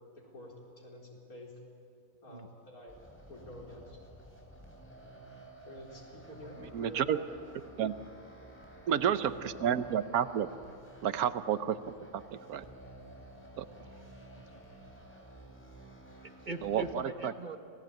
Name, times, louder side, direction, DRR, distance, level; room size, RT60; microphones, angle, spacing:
voice 1, 0.1-1.6 2.2-3.0 3.3-4.0 5.7-7.4 9.0-9.7, left 1 dB, 80° left, -2 dB, 4.8 m, -49 dB
sound 1, 2.9-17.0, right 1 dB, 10° left, 3.5 m, -52 dB
voice 2, 6.7-7.2 7.8-7.9 8.9-10.5 11.0-11.8 12.1-12.2 12.5-12.6 13.6-13.7 16.6-17.3, right 9 dB, 80° right, 13 dB, 1.3 m, -30 dB
voice 3, 13.7-15.0 16.2-17.6, right 2 dB, 35° right, 7 dB, 1.1 m, -43 dB
26.5 x 18.0 x 9.0 m, 2.5 s
omnidirectional pair, 1.5 m